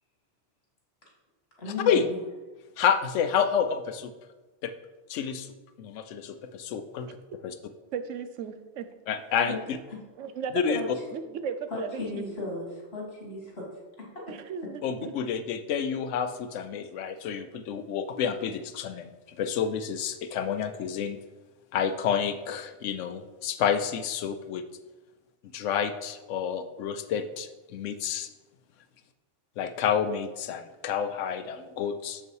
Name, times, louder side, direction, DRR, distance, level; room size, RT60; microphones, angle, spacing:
voice 1, 1.6-2.2 9.5-9.6 9.9-10.0 10.7-10.9 11.7-13.7, left 3 dB, 55° left, -2 dB, 2.3 m, -35 dB
voice 2, 2.8-4.1 4.6-4.7 5.1-5.5 5.8-7.1 7.4-7.5 9.1-9.5 10.5-10.8 14.8-19.1 19.4-21.2 21.7-24.6 25.5-28.3 29.6-32.2, left 7 dB, 90° left, 10 dB, 0.9 m, -29 dB
voice 3, 7.9-8.9 10.2-12.4 14.3-14.8, right 6 dB, 85° right, 10 dB, 1.0 m, -35 dB
7.0 x 5.5 x 4.7 m, 1.2 s
omnidirectional pair, 1.2 m